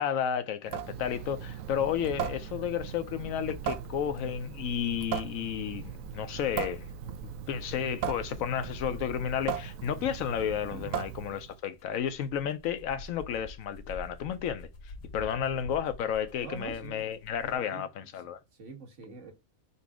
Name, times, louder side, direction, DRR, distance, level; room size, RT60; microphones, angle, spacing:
voice 1, 0.0-6.9 7.5-18.4, left 8 dB, 75° left, 1.0 m, -32 dB
Water tap faucet / Sink (filling or washing) / Drip, 0.6-11.6, right 8 dB, 75° right, 1.0 m, -38 dB
sound 1, 6.3-10.6 11.0-11.1 11.5-17.6, left 2 dB, 50° left, 1.0 m, -48 dB
voice 2, 15.1-15.7 16.4-17.0 17.5-17.9 18.5-19.3, right 5 dB, 60° right, 1.5 m, -45 dB
4.0 x 2.6 x 4.7 m
omnidirectional pair, 1.5 m